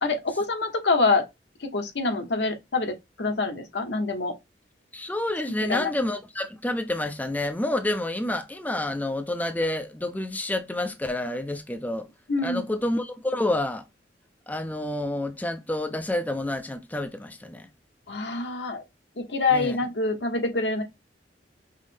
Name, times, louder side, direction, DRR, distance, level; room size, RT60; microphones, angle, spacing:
voice 1, 0.0-1.3 1.6-4.3 5.7-5.9 12.3-12.6 18.1-18.8 19.2-20.8, left 3 dB, 70° left, 1.0 m, -26 dB
voice 2, 4.9-12.1 12.4-13.8 14.5-17.7 19.5-19.8, left 1 dB, 10° left, 0.4 m, -29 dB
5.4 x 2.0 x 3.2 m
head